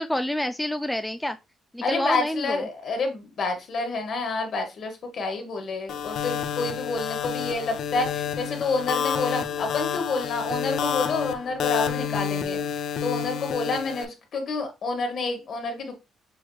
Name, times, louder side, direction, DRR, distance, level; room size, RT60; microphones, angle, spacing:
voice 1, 0.0-1.4 1.7-2.7 11.9-12.2, left 1 dB, 5° left, 0.3 m, -28 dB
voice 2, 1.8-16.0, left 3 dB, 60° left, 1.5 m, -29 dB
sound 1, 5.9-14.0, left 8 dB, 75° left, 0.5 m, -29 dB
6.3 x 3.0 x 2.3 m
cardioid pair, 90°, 0 cm